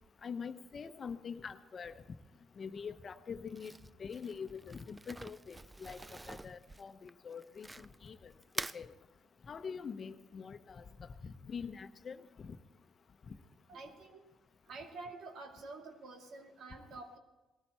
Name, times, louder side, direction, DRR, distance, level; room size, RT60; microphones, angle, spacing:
voice 1, 0.2-2.0 2.6-3.7 4.0-6.0 6.3-8.9 9.5-12.6 13.3-13.4, left 6 dB, 45° left, 10 dB, 0.9 m, -45 dB
Crumpling crinkling, 3.5-8.1 8.4-8.8, right 2 dB, 15° right, 0.4 m, -45 dB
voice 2, 13.7-14.2 14.7-17.2, right 3 dB, 75° right, 3 dB, 2.4 m, -48 dB
19.0 x 13.5 x 4.4 m, 1.2 s
cardioid pair, 90°, 0 cm